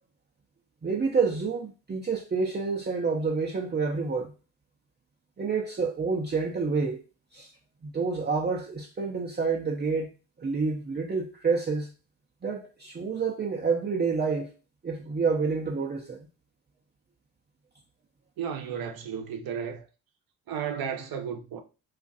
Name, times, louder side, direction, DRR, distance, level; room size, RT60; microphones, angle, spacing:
voice 1, 0.8-4.3 5.4-7.0 7.3-7.5 7.8-10.1 10.4-11.9 12.4-14.5 14.8-16.2, right 4 dB, 25° right, 0.7 m, -28 dB
voice 2, 18.4-19.8 20.5-21.6, right 7 dB, 60° right, 0.8 m, -33 dB
2.5 x 2.4 x 4.0 m
supercardioid pair, 55°, 42 cm